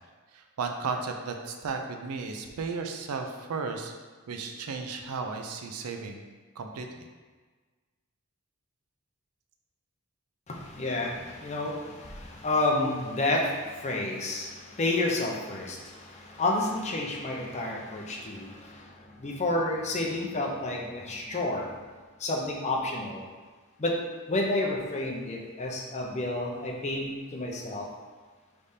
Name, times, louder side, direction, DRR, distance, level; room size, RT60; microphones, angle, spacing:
voice 1, 0.3-3.9 4.3-6.2 6.6-7.1, right 4 dB, 85° right, 4 dB, 0.5 m, -34 dB
voice 2, 10.5-21.8 22.2-23.2 23.8-23.9 24.3-27.9, left 2 dB, 30° left, -1 dB, 0.6 m, -30 dB
5.0 x 3.3 x 2.7 m, 1.4 s
head